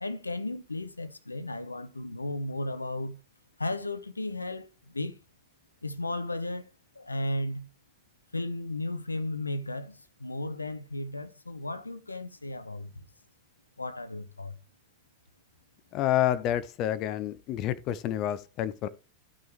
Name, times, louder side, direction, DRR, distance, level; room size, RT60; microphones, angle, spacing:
voice 1, 0.0-3.2 3.6-5.2 5.8-7.7 8.3-13.1 13.8-14.6, left 2 dB, 80° left, 0.6 m, -35 dB
voice 2, 15.9-18.9, left 12 dB, 40° left, 0.5 m, -28 dB
12.5 x 6.1 x 3.1 m
figure-of-eight pair, 90°, 0 cm